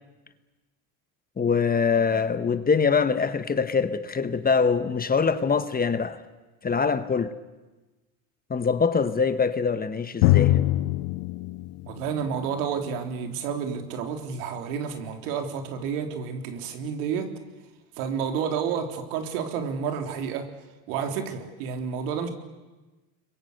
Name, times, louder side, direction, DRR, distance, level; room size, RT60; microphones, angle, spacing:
voice 1, 1.4-6.2 6.6-7.3 8.5-10.6, left 5 dB, 20° left, 1.2 m, -24 dB
Drum, 10.2-13.7, left 16 dB, 70° left, 1.4 m, -24 dB
voice 2, 11.9-17.3 18.0-20.5 20.9-22.3, right 7 dB, 75° right, 3.6 m, -30 dB
30.0 x 22.5 x 6.7 m
supercardioid pair, 100°, 45 cm